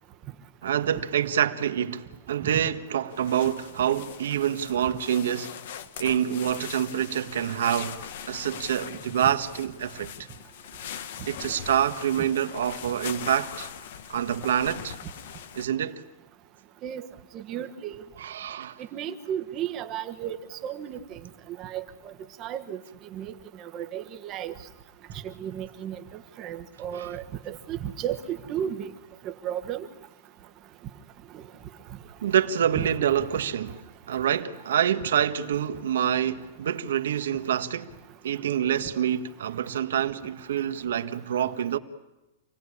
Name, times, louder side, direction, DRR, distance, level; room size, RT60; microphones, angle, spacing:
voice 1, 0.6-5.5 6.0-10.1 11.2-13.7 14.1-15.0 15.6-15.9 18.2-18.8 26.9-27.1 32.2-37.9 38.2-41.8, right 9 dB, 75° right, 1.5 m, -26 dB
sound 1, 3.1-15.7, left 9 dB, 50° left, 1.3 m, -41 dB
voice 2, 17.3-18.0 18.9-20.4 20.6-21.0 21.6-21.8 22.4-22.8 23.1-23.3 23.6-24.5 25.4-26.0 26.4-28.9 29.2-29.9 32.7-32.9, right 10 dB, 20° right, 1.3 m, -33 dB
27.0 x 18.0 x 9.9 m
supercardioid pair, 175°, 0 cm